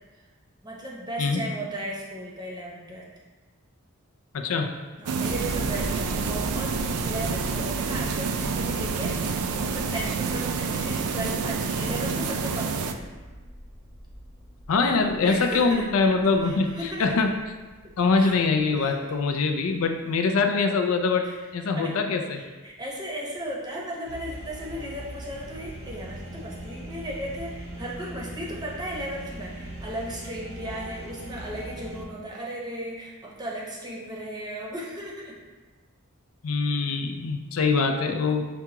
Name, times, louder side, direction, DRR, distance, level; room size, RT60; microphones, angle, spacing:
voice 1, 0.6-3.1 5.0-13.0 14.8-15.0 15.2-15.8 16.4-17.2 18.2-18.3 18.8-19.0 21.2-21.4 21.8-21.9 22.3-35.4, right 1 dB, 20° right, -3 dB, 0.7 m, -36 dB
voice 2, 4.3-4.7 14.7-17.4 18.0-22.4 36.4-38.4, left 4 dB, 70° left, 5 dB, 0.4 m, -24 dB
sound 1, 5.1-12.9, right 5 dB, 90° right, 0.3 m, -28 dB
sound 2, 5.3-19.5 20.1-20.2, equal, 35° left, 0.8 m, -40 dB
sound 3, 24.1-32.1, right 1 dB, 60° right, 0.7 m, -40 dB
6.9 x 2.3 x 2.9 m, 1.3 s
head